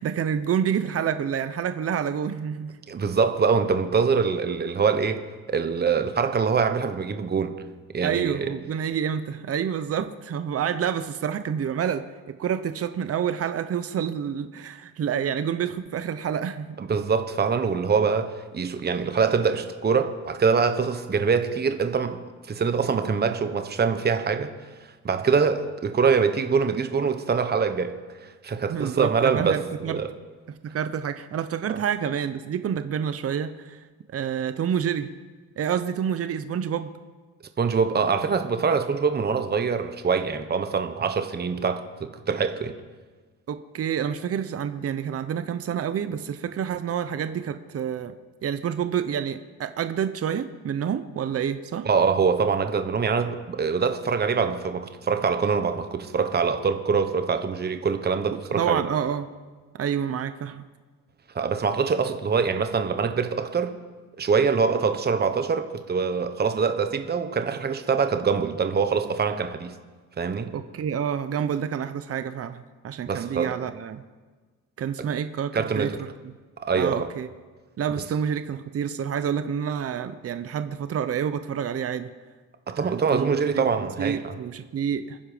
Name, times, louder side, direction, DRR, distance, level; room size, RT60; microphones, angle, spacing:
voice 1, 0.0-2.8 8.0-16.8 28.7-30.0 30.5-33.9 34.1-35.1 35.6-36.9 43.5-48.1 48.4-51.9 58.3-59.3 59.7-60.6 70.5-74.0 74.8-76.1 76.7-77.3 77.8-82.1 82.8-85.2, right 8 dB, 50° right, 0.9 m, -28 dB
voice 2, 2.9-7.6 7.9-8.5 16.8-24.6 25.0-30.1 37.6-42.8 51.8-58.8 61.3-63.8 64.2-69.8 70.2-70.5 73.1-73.6 75.0-75.1 75.5-76.0 76.6-77.1 82.7-84.3, right 5 dB, 35° right, 1.2 m, -24 dB
27.5 x 10.0 x 5.2 m
cardioid pair, 90°, 30 cm